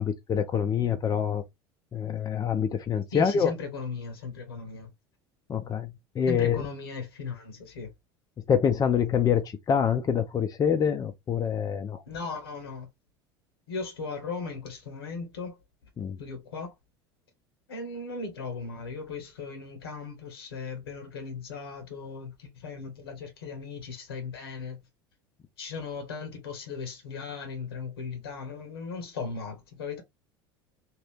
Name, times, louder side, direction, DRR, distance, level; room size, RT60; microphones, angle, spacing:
voice 1, 0.0-1.4 1.9-3.5 5.5-6.6 8.5-12.0 16.0-16.2, left 7 dB, 30° left, 0.6 m, -26 dB
voice 2, 3.1-4.9 6.3-7.9 12.1-12.9 13.7-15.6 16.2-16.7 17.7-24.8 25.6-30.0, left 4 dB, 80° left, 1.1 m, -37 dB
2.8 x 2.4 x 3.4 m
hypercardioid pair, 75°, 13 cm